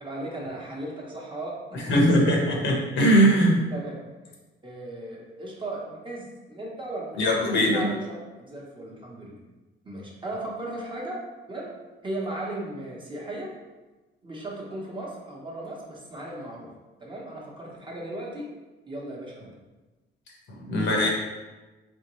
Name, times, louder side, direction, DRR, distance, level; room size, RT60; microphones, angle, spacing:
voice 1, 0.0-2.0 3.7-4.0 4.6-7.2 7.5-9.3 9.8-11.2 11.5-11.7 12.0-13.5 14.2-16.7 17.0-18.5 18.9-19.5, right 1 dB, 25° right, -3 dB, 0.9 m, -36 dB
voice 2, 1.7-3.6 7.2-7.9 20.5-21.1, equal, 65° left, -1 dB, 1.0 m, -21 dB
3.7 x 3.5 x 3.0 m, 1.2 s
cardioid pair, 120°, 21 cm